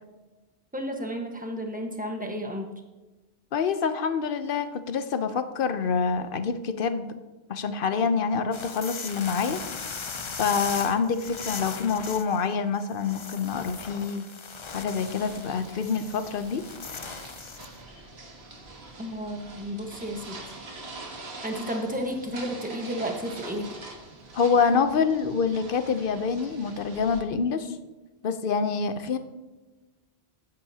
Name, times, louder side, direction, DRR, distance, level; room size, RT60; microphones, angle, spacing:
voice 1, 0.7-2.7 19.0-20.4 21.4-23.7, equal, 10° right, 3 dB, 1.1 m, -32 dB
voice 2, 3.5-7.1 7.5-9.6 10.4-14.2 14.7-16.6 24.3-27.8 28.2-29.2, left 5 dB, 60° left, 10 dB, 0.9 m, -26 dB
sound 1, 8.5-17.8, left 5 dB, 35° left, 0.5 m, -38 dB
sound 2, 15.0-27.2, right 2 dB, 90° right, 1.7 m, -44 dB
12.5 x 9.4 x 2.8 m, 1.1 s
omnidirectional pair, 1.0 m